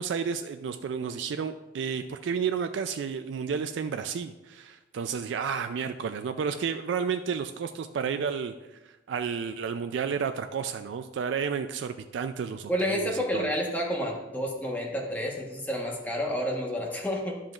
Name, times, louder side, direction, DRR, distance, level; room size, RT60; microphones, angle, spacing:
voice 1, 0.0-13.5, right 6 dB, 75° right, 9 dB, 0.3 m, -31 dB
voice 2, 12.7-17.4, equal, 10° left, -1 dB, 1.1 m, -30 dB
10.5 x 7.4 x 2.4 m, 1.1 s
head